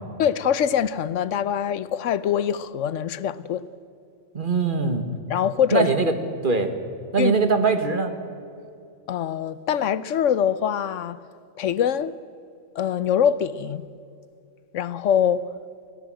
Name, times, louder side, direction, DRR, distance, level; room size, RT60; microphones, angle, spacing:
voice 1, 0.2-3.6 5.3-5.9 7.2-7.3 9.1-11.2 11.6-12.1 12.7-13.9 14.7-15.5, left 8 dB, 90° left, 1.1 m, -23 dB
voice 2, 4.3-5.0 5.7-6.1 6.4-6.7 7.1-8.1, right 4 dB, 45° right, 1.7 m, -21 dB
25.0 x 16.5 x 7.7 m
omnidirectional pair, 1.2 m